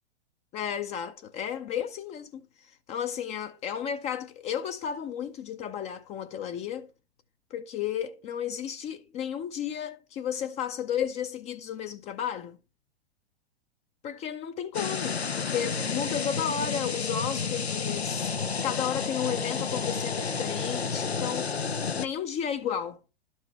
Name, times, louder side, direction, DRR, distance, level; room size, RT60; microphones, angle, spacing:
voice 1, 0.5-6.9 7.5-12.6 14.0-18.3 18.6-23.0, left 8 dB, 20° left, 0.6 m, -33 dB
sound 1, 14.7-22.1, left 5 dB, 85° left, 0.6 m, -31 dB
12.5 x 5.4 x 3.1 m
figure-of-eight pair, 100°, 31 cm